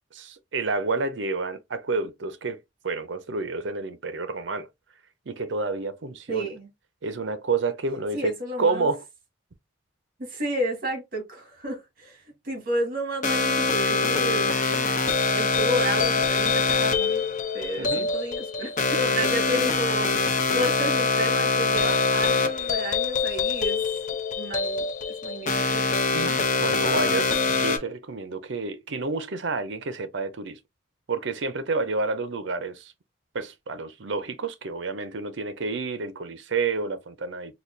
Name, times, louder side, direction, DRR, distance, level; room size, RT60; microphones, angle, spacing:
voice 1, 0.1-4.7 5.3-6.5 7.0-8.3 8.6-9.0 17.8-18.1 26.1-30.6 31.1-32.9 33.3-37.6, right 3 dB, 65° right, 0.6 m, -29 dB
voice 2, 6.3-6.7 8.1-8.9 10.2-17.2 17.5-23.8 24.4-25.8, equal, 45° right, 1.7 m, -31 dB
sound 1, 13.2-27.8, left 4 dB, 40° left, 0.6 m, -24 dB
4.1 x 2.2 x 3.1 m
head